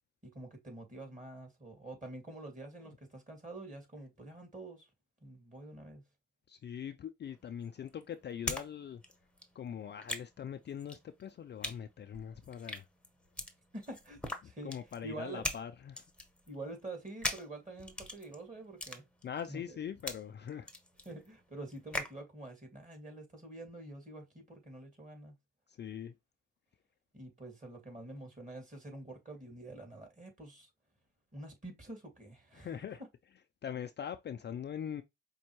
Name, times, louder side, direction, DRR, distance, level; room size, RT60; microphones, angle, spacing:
voice 1, 0.2-4.9 5.2-6.0 13.7-14.2 14.4-14.7 15.0-15.4 16.5-19.0 19.5-19.8 21.1-25.3 27.1-30.7 31.3-32.8, right 2 dB, 25° right, 2.2 m, -47 dB
voice 2, 6.5-9.0 9.5-12.9 14.4-16.0 19.2-20.7 25.7-26.1 32.5-33.0 33.6-35.0, left 8 dB, 35° left, 0.4 m, -42 dB
sound 1, 7.2-8.7 8.9-22.2, left 1 dB, 5° left, 1.0 m, -42 dB
5.2 x 2.2 x 3.0 m
supercardioid pair, 60°, 29 cm